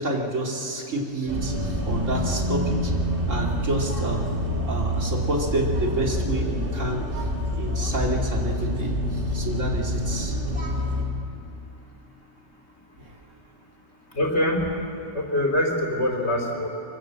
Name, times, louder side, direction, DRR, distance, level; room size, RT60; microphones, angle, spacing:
voice 1, 0.0-2.9 3.3-4.3 4.6-7.0 7.5-10.3 13.0-13.1, right 1 dB, 80° right, 0 dB, 3.2 m, -29 dB
sound 1, 1.3-11.0, equal, 45° right, 3.2 m, -27 dB
voice 2, 14.2-14.6 15.1-16.7, left 1 dB, 60° left, 1 dB, 3.8 m, -24 dB
23.5 x 23.5 x 7.7 m, 2.6 s
omnidirectional pair, 1.3 m